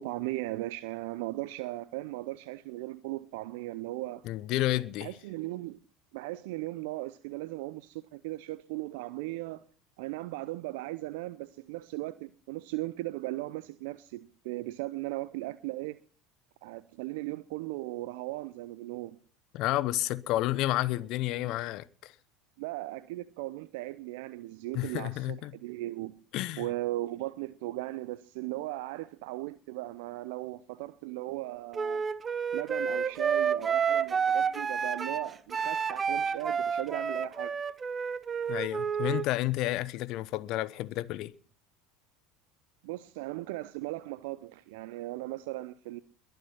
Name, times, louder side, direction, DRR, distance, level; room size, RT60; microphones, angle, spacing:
voice 1, 0.0-4.3 5.0-5.8 6.1-9.6 10.0-16.0 16.6-19.2 22.6-26.1 26.6-32.0 32.5-37.5 42.8-46.0, right 18 dB, 65° right, 0.6 m, -37 dB
voice 2, 4.2-5.1 19.5-22.1 24.7-25.5 26.3-26.7 38.5-41.3, left 16 dB, 55° left, 0.9 m, -31 dB
Wind instrument woodwind instrument, 31.7-39.3, right 6 dB, 30° right, 0.9 m, -30 dB
21.5 x 9.2 x 5.9 m
hypercardioid pair, 75°, 0 cm